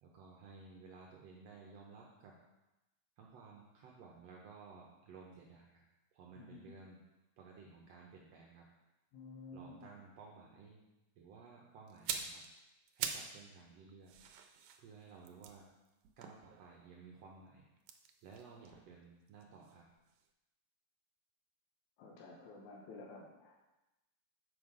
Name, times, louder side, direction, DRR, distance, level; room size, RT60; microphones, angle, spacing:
voice 1, 0.0-2.4 3.2-5.8 6.1-7.0 7.4-8.7 9.5-10.8 11.2-12.4 12.9-14.1 14.8-15.7 16.2-17.6 18.2-19.9, right 4 dB, 70° right, -2 dB, 1.9 m, -56 dB
voice 2, 9.1-9.8 22.0-23.5, left 3 dB, 85° left, -1 dB, 2.4 m, -52 dB
sound 1, 11.9-13.4 13.7-17.0 17.8-19.8 20.1-20.3, right 7 dB, 85° right, 2.1 m, -45 dB
7.2 x 5.6 x 4.9 m, 0.98 s
omnidirectional pair, 3.3 m